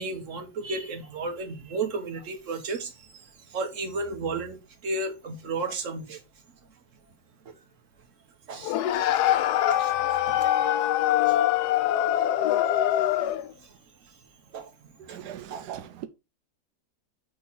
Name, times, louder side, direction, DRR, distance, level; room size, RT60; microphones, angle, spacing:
voice 1, 0.0-6.2 7.4-7.5 8.5-9.3 9.6-10.0 10.3-10.7 11.2-11.4 13.6-13.8 14.1-14.2 14.5-14.7 15.1-15.7, right 3 dB, 50° right, 1.5 m, -34 dB
sound 1, 8.6-13.5, left 12 dB, 80° left, 1.1 m, -23 dB
voice 2, 15.0-16.1, right 11 dB, 90° right, 1.2 m, -40 dB
6.3 x 3.7 x 4.5 m
omnidirectional pair, 1.7 m